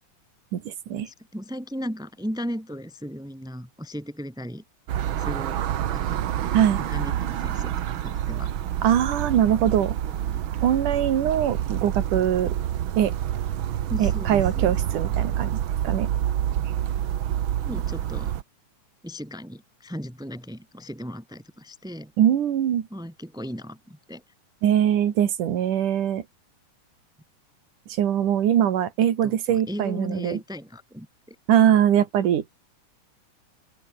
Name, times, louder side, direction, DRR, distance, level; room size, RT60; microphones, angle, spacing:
voice 1, 0.5-1.1 6.5-6.8 8.8-10.0 10.6-12.5 13.0-13.1 14.0-15.5 15.8-16.1 22.2-22.9 24.6-26.2 28.0-30.4 31.5-32.4, right 10 dB, 80° right, 3.4 m, -22 dB
voice 2, 1.0-4.6 5.2-5.6 5.9-8.5 10.0-10.4 13.9-14.8 17.6-18.3 19.0-22.1 22.9-24.2 29.2-31.4, equal, ahead, 4.0 m, -36 dB
sound 1, 4.9-18.4, right 11 dB, 65° right, 1.3 m, -27 dB
open air
omnidirectional pair, 3.6 m